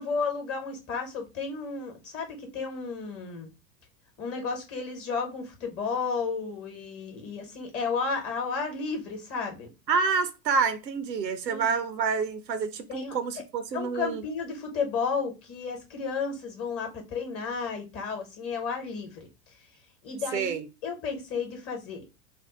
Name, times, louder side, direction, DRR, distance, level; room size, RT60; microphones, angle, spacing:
voice 1, 0.0-3.5 4.2-9.7 11.4-11.7 12.9-13.4 13.7-19.3 20.0-22.0, left 5 dB, 30° left, 1.1 m, -33 dB
voice 2, 9.9-14.2 20.3-20.7, right 5 dB, 80° right, 0.6 m, -28 dB
2.5 x 2.0 x 3.7 m
figure-of-eight pair, 90°, 49 cm